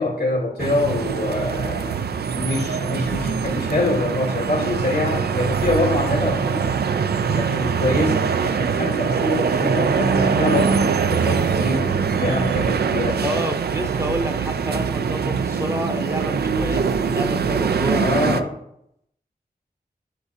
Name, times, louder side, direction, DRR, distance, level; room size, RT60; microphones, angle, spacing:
voice 1, 0.0-2.0 2.3-6.6 7.2-13.4 17.9-18.6, left 2 dB, 85° left, -2 dB, 2.0 m, -25 dB
sound 1, 0.6-18.4, right 6 dB, 75° right, 0.4 m, -23 dB
voice 2, 13.2-18.5, equal, 20° right, 6 dB, 0.8 m, -29 dB
8.5 x 6.1 x 2.7 m, 0.75 s
cardioid pair, 45°, 16 cm